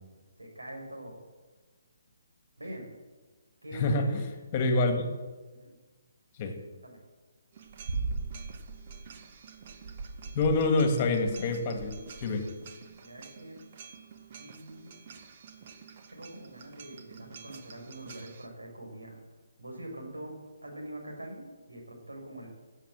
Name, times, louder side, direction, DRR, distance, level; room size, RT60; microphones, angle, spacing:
voice 1, 0.4-1.2 2.6-2.9 3.6-4.3 5.5-5.7 6.4-6.5 6.8-7.0 13.0-13.6 14.3-14.9 16.1-19.2 19.6-22.5, right 1 dB, 80° right, 1 dB, 5.1 m, -44 dB
voice 2, 3.7-4.2 4.5-5.1 6.3-6.5 10.3-12.5, left 2 dB, 30° left, 5 dB, 2.1 m, -27 dB
sound 1, 7.5-18.5, right 4 dB, 40° right, 1.3 m, -42 dB
16.0 x 8.1 x 7.6 m, 1.3 s
figure-of-eight pair, 140°, 0 cm